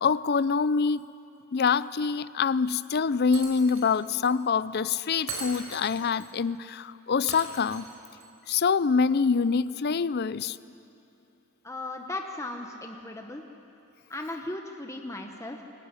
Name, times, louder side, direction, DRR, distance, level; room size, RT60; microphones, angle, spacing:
voice 1, 0.0-1.1 1.5-7.9 8.5-10.6, left 5 dB, 50° left, 0.5 m, -25 dB
Shatter, 3.3-4.0 4.2-4.3 5.3-6.3 7.3-8.3, right 4 dB, 85° right, 4.6 m, -40 dB
voice 2, 11.6-13.4 14.1-15.6, left 2 dB, 15° left, 1.0 m, -37 dB
22.0 x 19.0 x 9.7 m
head